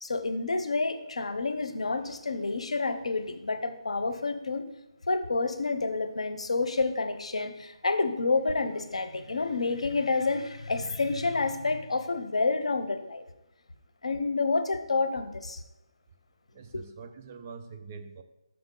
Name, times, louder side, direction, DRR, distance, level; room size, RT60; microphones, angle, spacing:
voice 1, 0.0-4.6 5.1-13.2 14.0-15.6 16.7-16.8, left 3 dB, 85° left, 9 dB, 0.7 m, -29 dB
voice 2, 16.5-18.2, right 5 dB, 20° right, 6 dB, 0.3 m, -44 dB
6.1 x 6.0 x 3.8 m, 0.92 s
hypercardioid pair, 175°, 3 cm